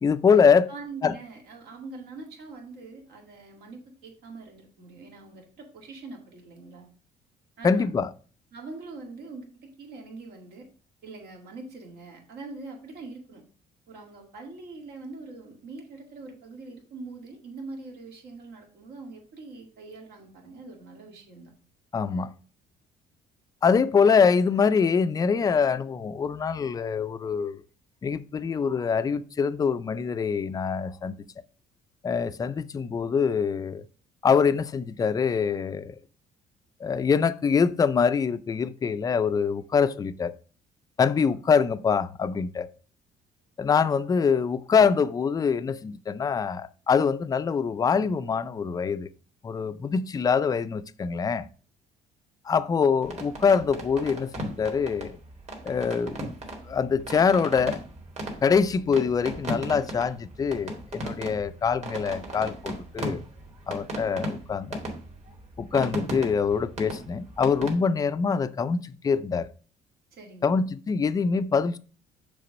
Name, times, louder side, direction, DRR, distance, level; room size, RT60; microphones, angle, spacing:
voice 1, 0.0-0.7 1.0-1.1 7.6-8.1 21.9-22.3 23.6-27.6 28.0-31.1 32.0-33.8 34.2-36.0 36.8-40.3 41.0-42.7 43.6-49.1 49.4-51.5 52.5-55.2 55.6-56.3 56.7-57.8 58.4-63.2 63.7-64.8 65.6-69.5 70.4-71.8, left 6 dB, 20° left, 0.4 m, -24 dB
voice 2, 0.7-6.9 7.6-7.9 8.5-10.7 11.0-13.4 13.9-21.5 70.1-70.6, right 3 dB, 70° right, 2.0 m, -43 dB
sound 1, 53.0-67.7, right 1 dB, 40° right, 2.3 m, -37 dB
6.7 x 3.4 x 5.2 m
cardioid pair, 110°, 17 cm